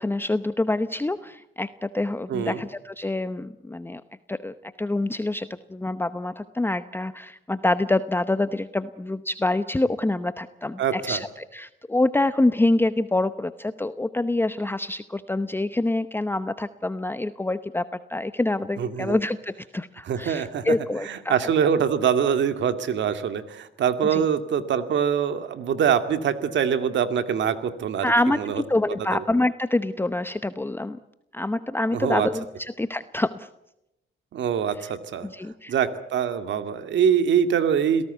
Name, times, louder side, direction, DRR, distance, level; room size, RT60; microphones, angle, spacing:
voice 1, 0.0-4.0 4.3-21.3 24.1-24.2 28.0-31.0 31.3-33.5 34.8-34.9 35.2-35.7, left 2 dB, 10° left, 12 dB, 0.8 m, -26 dB
voice 2, 2.3-2.6 10.8-11.2 18.8-19.2 20.0-20.6 21.0-28.1 28.4-28.6 29.0-29.2 31.9-32.3 34.3-35.3 35.7-38.0, right 8 dB, 65° right, 9 dB, 2.2 m, -24 dB
27.5 x 18.0 x 8.1 m, 0.87 s
cardioid pair, 90°, 20 cm